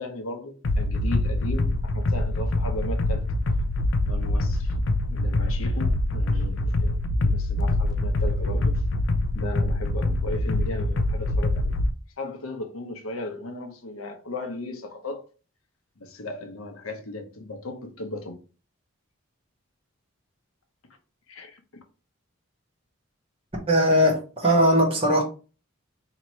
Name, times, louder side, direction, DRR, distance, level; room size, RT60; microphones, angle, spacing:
voice 1, 0.0-3.2 4.0-4.7 5.1-8.8 9.3-11.8 12.2-15.3 16.0-18.4 21.3-21.6, left 2 dB, 80° left, 0.8 m, -36 dB
sound 1, 0.6-11.9, left 1 dB, 60° left, 0.4 m, -24 dB
voice 2, 23.7-25.2, equal, 25° right, 1.0 m, -19 dB
3.0 x 2.9 x 4.3 m
head